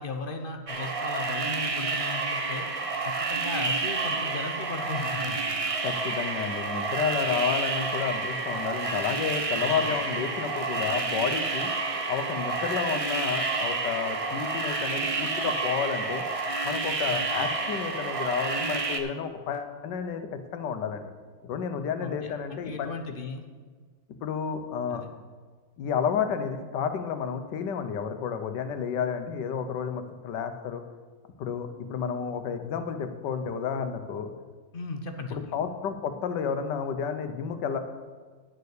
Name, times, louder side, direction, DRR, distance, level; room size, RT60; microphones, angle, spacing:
voice 1, 0.0-2.7 3.0-5.6 9.6-9.9 17.3-17.5 22.0-23.4 24.9-25.1 34.7-35.5, left 3 dB, 50° left, 6 dB, 0.6 m, -37 dB
sound 1, 0.7-19.0, right 3 dB, 50° right, 0.4 m, -29 dB
voice 2, 5.8-11.7 12.1-16.2 16.6-20.3 20.5-21.1 21.4-23.0 24.2-25.0 25.8-30.8 31.4-34.3 35.3-37.8, left 7 dB, 75° left, 8 dB, 1.4 m, -31 dB
10.5 x 6.8 x 6.5 m, 1.5 s
omnidirectional pair, 1.9 m